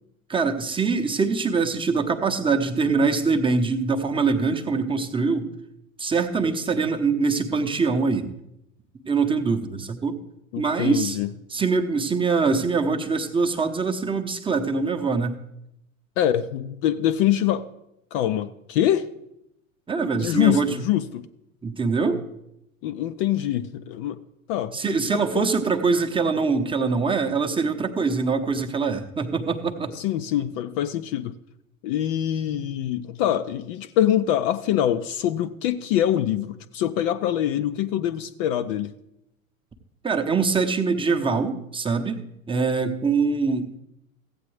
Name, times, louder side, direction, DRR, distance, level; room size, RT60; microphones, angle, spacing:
voice 1, 0.3-5.5 6.0-8.3 9.1-10.2 10.6-11.2 11.5-15.3 19.9-20.7 21.6-22.2 24.7-29.9 40.0-42.2 42.5-43.8, right 4 dB, 10° right, 5 dB, 0.8 m, -23 dB
voice 2, 10.5-11.3 16.2-17.7 18.1-19.1 20.2-21.3 22.8-24.2 24.5-25.5 29.9-31.3 31.8-38.9, left 11 dB, 40° left, 11 dB, 0.5 m, -24 dB
15.0 x 8.3 x 3.2 m, 0.83 s
figure-of-eight pair, 85°, 42 cm